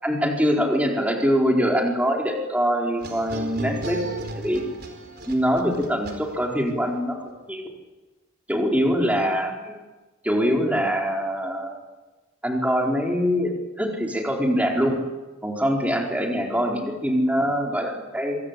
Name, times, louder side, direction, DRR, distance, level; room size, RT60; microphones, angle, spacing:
voice 1, 0.0-4.0 4.4-4.6 5.3-7.7 8.5-9.8 10.2-11.8 12.4-15.0 15.4-18.4, equal, 5° right, 0 dB, 4.6 m, -23 dB
sound 1, 3.0-6.7, right 1 dB, 50° right, 4.7 m, -35 dB
26.5 x 25.5 x 8.6 m, 1.2 s
head